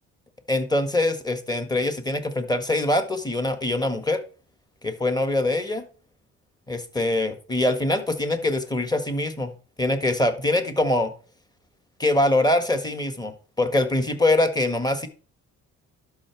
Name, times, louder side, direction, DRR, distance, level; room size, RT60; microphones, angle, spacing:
voice 1, 0.5-4.2 4.8-5.8 6.7-9.5 9.8-11.1 12.0-15.1, left 1 dB, 15° left, 8 dB, 1.6 m, -23 dB
11.5 x 6.0 x 4.6 m, 0.38 s
cardioid pair, 90°, 30 cm